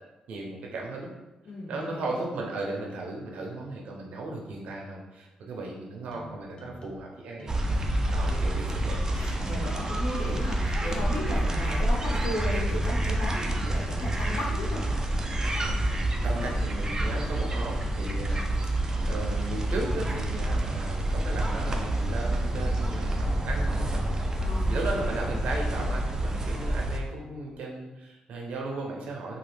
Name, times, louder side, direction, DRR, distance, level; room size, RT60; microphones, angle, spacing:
voice 1, 0.3-1.1 1.7-7.7 8.1-9.0 11.2-11.3 13.5-13.7 16.2-18.8 19.1-24.1 24.7-29.4, right 2 dB, 80° right, -1 dB, 0.7 m, -36 dB
voice 2, 1.4-2.1 9.1-14.8 24.4-24.7, left 1 dB, 85° left, -4 dB, 0.9 m, -35 dB
sound 1, 6.1-7.0 7.4-11.5 12.0-14.5 14.9-20.8, left 1 dB, 40° left, 0.6 m, -46 dB
sound 2, 7.5-27.0, right 1 dB, 25° right, 0.4 m, -28 dB
3.1 x 2.2 x 3.3 m, 1.1 s
cardioid pair, 80°, 2 cm